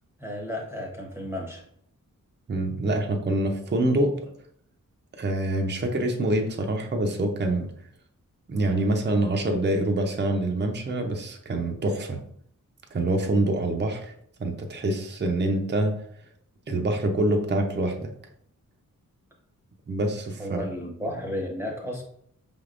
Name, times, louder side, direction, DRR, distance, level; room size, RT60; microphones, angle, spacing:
voice 1, 0.2-1.6 20.4-22.0, left 1 dB, 5° right, -2 dB, 0.9 m, -33 dB
voice 2, 2.5-4.2 5.2-7.7 8.5-12.2 12.9-14.1 14.4-16.0 16.7-18.1 19.9-20.6, right 1 dB, 30° right, 3 dB, 0.6 m, -25 dB
5.2 x 3.4 x 2.5 m, 0.67 s
wide cardioid pair, 90°, 33 cm